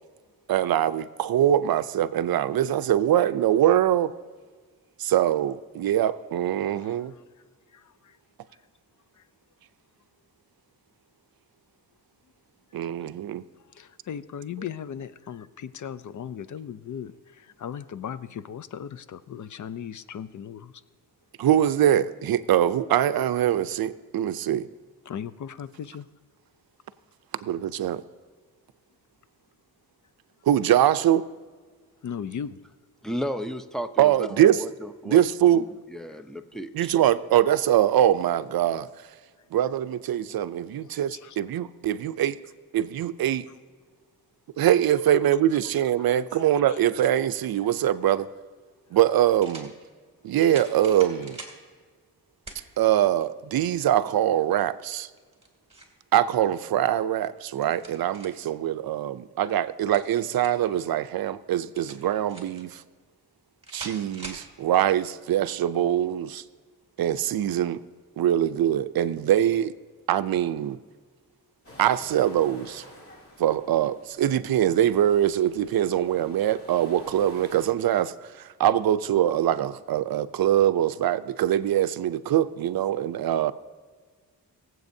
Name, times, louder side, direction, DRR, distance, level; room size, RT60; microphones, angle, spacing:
voice 1, 0.5-4.1 5.0-7.1 12.7-13.4 21.4-24.7 27.4-28.0 30.5-31.2 34.0-34.6 35.1-35.6 36.7-38.9 39.5-42.4 42.7-43.4 44.6-48.3 48.9-49.7 50.2-51.4 52.8-55.1 56.1-62.8 63.7-66.4 67.0-67.8 68.2-69.7 70.1-70.8 71.8-72.8 73.4-83.5, right 11 dB, 70° right, 0.5 m, -23 dB
voice 2, 6.7-7.4 7.7-8.2 8.5-8.6 9.1-9.3 13.5-20.8 25.0-26.1 32.0-32.6 36.1-36.2 40.8-41.4 45.1-45.2 46.0-46.8 51.2-51.3, left 8 dB, 55° left, 0.5 m, -38 dB
voice 3, 33.0-35.2 35.5-36.9, equal, ahead, 0.6 m, -34 dB
sound 1, 49.3-49.7 50.4-51.6 52.5-52.6 53.2-53.3 55.2-56.0 57.3-58.5 59.7-60.7 61.7-62.6 63.6-64.5, right 2 dB, 15° right, 2.5 m, -43 dB
sound 2, 71.6-77.7, left 1 dB, 35° left, 2.8 m, -49 dB
23.0 x 7.7 x 2.7 m
cardioid pair, 80°, 37 cm